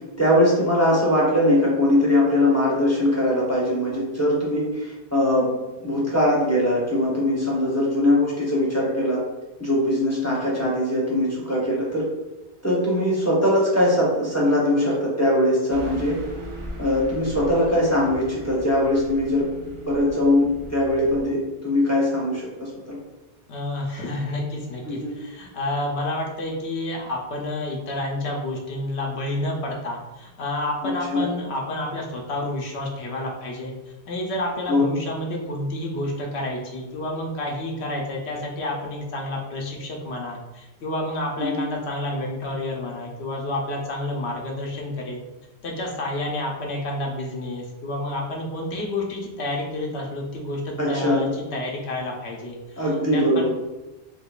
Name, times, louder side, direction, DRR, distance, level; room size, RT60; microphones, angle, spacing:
voice 1, 0.2-5.5 5.8-9.2 9.6-12.0 12.6-16.2 16.8-23.0 24.8-25.1 30.8-31.3 34.7-34.9 41.4-41.6 50.8-51.3 52.8-53.5, left 1 dB, 15° left, -6 dB, 0.7 m, -21 dB
Car passing by / Truck, 15.7-21.2, right 1 dB, 40° right, 0.5 m, -39 dB
voice 2, 23.5-33.7 34.1-45.2 45.6-53.5, left 1 dB, 90° left, -1 dB, 0.9 m, -29 dB
3.7 x 3.0 x 2.3 m, 1.1 s
omnidirectional pair, 1.1 m